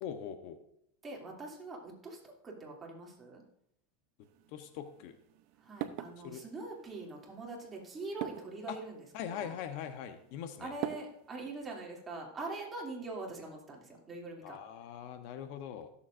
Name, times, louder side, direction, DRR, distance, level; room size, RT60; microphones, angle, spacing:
voice 1, 0.0-0.6 4.5-5.1 6.2-6.4 8.7-8.8 9.1-10.7 14.4-15.9, left 9 dB, 60° left, 8 dB, 0.9 m, -41 dB
voice 2, 1.0-3.4 5.6-9.0 9.3-9.6 10.6-14.6, right 3 dB, 20° right, -2 dB, 2.7 m, -43 dB
sound 1, 4.2-11.6, right 11 dB, 60° right, 0.7 m, -46 dB
17.0 x 7.1 x 2.6 m, 0.74 s
supercardioid pair, 125°, 0 cm